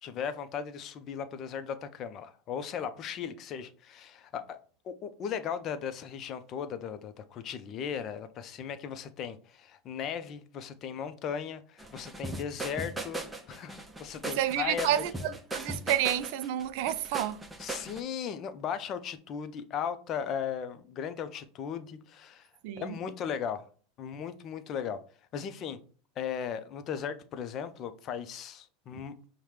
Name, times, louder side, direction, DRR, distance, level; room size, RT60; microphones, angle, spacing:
voice 1, 0.0-4.6 4.8-13.2 13.5-14.9 17.6-22.5 22.8-23.6 24.0-25.0 25.3-25.8 26.2-29.1, left 8 dB, 45° left, 0.5 m, -37 dB
sound 1, 11.8-18.0, right 2 dB, 10° right, 0.6 m, -38 dB
voice 2, 14.2-17.4 22.6-22.9, right 11 dB, 65° right, 0.4 m, -30 dB
5.6 x 2.1 x 3.2 m
hypercardioid pair, 100°, 0 cm